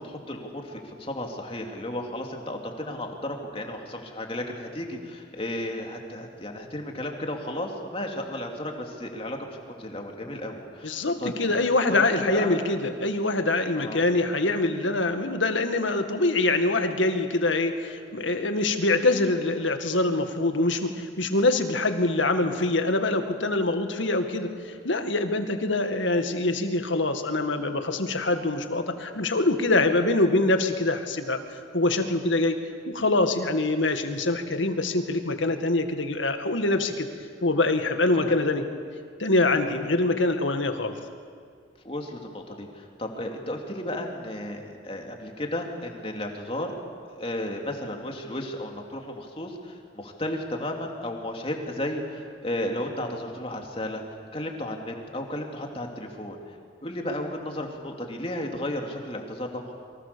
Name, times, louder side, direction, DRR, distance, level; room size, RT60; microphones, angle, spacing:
voice 1, 0.0-11.6 11.9-12.5 13.7-14.0 38.2-38.4 41.8-46.7 47.2-56.6 56.8-59.7, left 1 dB, 30° left, 2 dB, 2.9 m, -34 dB
voice 2, 10.8-32.6 32.9-37.1 37.4-38.6 39.2-40.9, left 2 dB, 85° left, 6 dB, 2.0 m, -24 dB
28.5 x 24.0 x 7.0 m, 2.1 s
head